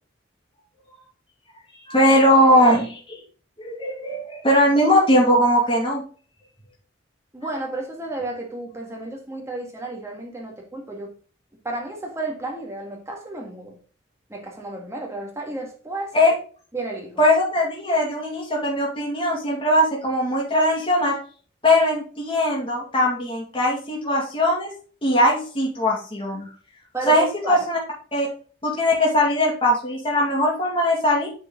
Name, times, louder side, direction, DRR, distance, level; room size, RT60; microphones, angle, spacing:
voice 1, 1.9-3.2 3.6-6.0 16.1-16.3 17.2-21.2 21.6-24.7 25.0-26.5 27.1-27.8 28.1-28.3 28.6-31.3, left 1 dB, 25° left, -3 dB, 2.2 m, -20 dB
voice 2, 7.3-11.1 11.6-13.8 14.3-16.1 16.7-17.2 26.9-27.7, right 2 dB, 15° right, 0 dB, 1.9 m, -32 dB
8.6 x 4.5 x 3.9 m, 0.40 s
head